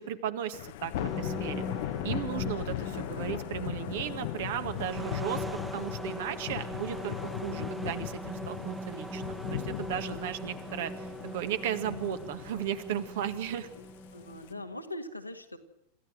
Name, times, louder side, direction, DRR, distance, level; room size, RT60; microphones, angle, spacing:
voice 1, 0.0-1.6 2.0-5.4 5.7-13.7, right 10 dB, 55° right, 10 dB, 1.7 m, -35 dB
Thunder / Rain, 0.5-14.5, left 14 dB, 55° left, 0.9 m, -38 dB
sound 1, 0.9-14.8, equal, 5° right, 1.1 m, -41 dB
sound 2, 1.9-13.8, right 9 dB, 75° right, 2.3 m, -61 dB
voice 2, 14.1-15.6, left 1 dB, 85° left, 5 dB, 1.8 m, -41 dB
27.0 x 14.5 x 7.8 m, 0.88 s
figure-of-eight pair, 90°, 0 cm